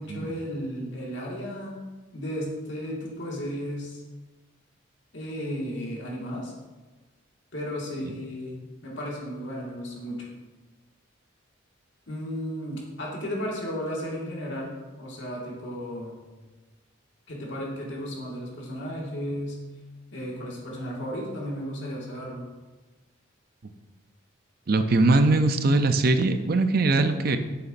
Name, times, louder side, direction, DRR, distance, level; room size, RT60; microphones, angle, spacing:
voice 1, 0.0-4.0 5.1-6.5 7.5-10.3 12.1-16.2 17.3-19.6 20.1-22.4, equal, 65° left, -3 dB, 1.9 m, -34 dB
voice 2, 24.7-27.4, right 2 dB, 45° right, 8 dB, 0.5 m, -21 dB
9.1 x 6.8 x 2.6 m, 1.2 s
head